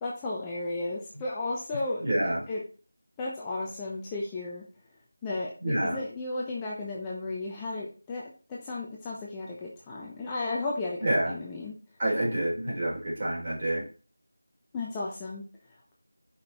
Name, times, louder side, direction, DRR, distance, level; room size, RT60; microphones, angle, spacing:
voice 1, 0.0-2.6 3.2-4.6 5.2-8.2 8.5-11.7 14.7-15.4, left 2 dB, 15° left, -4 dB, 0.8 m, -34 dB
voice 2, 2.0-2.4 5.6-6.0 11.0-11.3 12.0-13.8, right 1 dB, 30° right, -6 dB, 3.9 m, -27 dB
6.5 x 5.5 x 4.3 m, 0.37 s
figure-of-eight pair, 170°, 0 cm